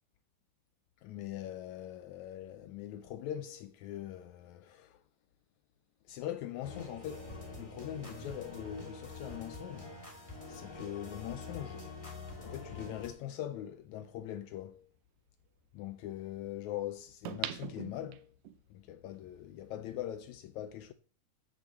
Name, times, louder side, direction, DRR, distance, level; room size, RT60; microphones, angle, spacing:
voice 1, 1.0-5.0 6.1-9.9 10.5-11.9 12.4-14.9 15.7-18.3 18.7-20.9, left 12 dB, 85° left, 1.6 m, -42 dB
sound 1, 6.6-13.1, left 3 dB, 10° left, 2.0 m, -46 dB
sound 2, 13.6-13.7 17.3-18.6 19.1-19.2, right 13 dB, 85° right, 2.4 m, -40 dB
8.2 x 6.9 x 7.3 m
omnidirectional pair, 3.9 m